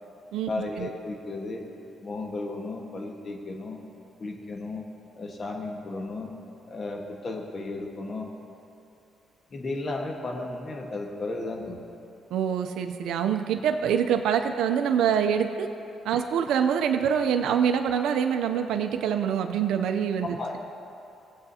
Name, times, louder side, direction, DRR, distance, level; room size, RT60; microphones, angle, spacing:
voice 1, 0.5-1.6 2.0-3.8 4.2-4.8 5.2-6.3 6.7-8.3 9.5-11.8 16.1-16.2 20.3-20.6, left 2 dB, 40° left, 1 dB, 1.4 m, -34 dB
voice 2, 12.3-15.7 16.0-20.3, right 8 dB, 80° right, 6 dB, 0.5 m, -25 dB
18.5 x 7.9 x 2.8 m, 2.8 s
cardioid pair, 90°, 0 cm